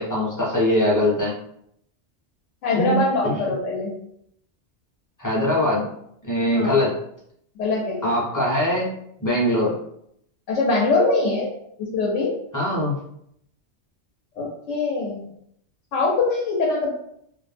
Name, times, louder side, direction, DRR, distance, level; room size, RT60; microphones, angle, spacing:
voice 1, 0.0-1.3 2.7-3.4 5.2-5.8 6.2-7.0 8.0-8.9 9.2-9.7 12.5-13.0, left 1 dB, 20° left, -5 dB, 0.5 m, -22 dB
voice 2, 2.6-3.9 6.5-6.8 7.6-8.1 10.5-11.5 11.8-12.3 14.4-15.2 15.9-16.9, left 3 dB, 90° left, -3 dB, 1.0 m, -23 dB
2.3 x 2.0 x 3.2 m, 0.72 s
omnidirectional pair, 1.2 m